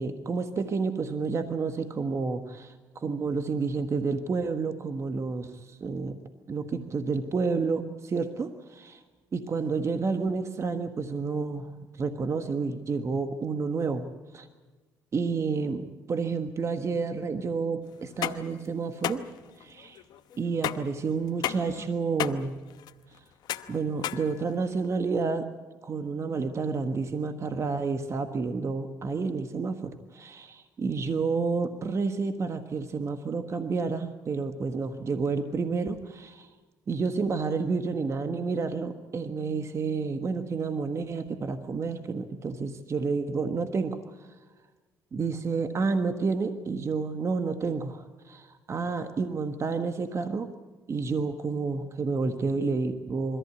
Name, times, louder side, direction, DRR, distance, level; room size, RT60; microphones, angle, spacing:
voice 1, 0.0-6.2 6.5-9.0 9.3-11.7 12.0-14.5 15.1-19.2 19.6-20.0 20.4-22.6 23.7-25.5 25.8-36.5 36.9-44.3 45.1-50.5 50.9-53.4, right 4 dB, 40° right, 8 dB, 1.3 m, -30 dB
sound 1, 18.0-24.9, left 12 dB, 75° left, 1.0 m, -35 dB
23.0 x 14.5 x 9.6 m, 1.3 s
supercardioid pair, 80°, 7 cm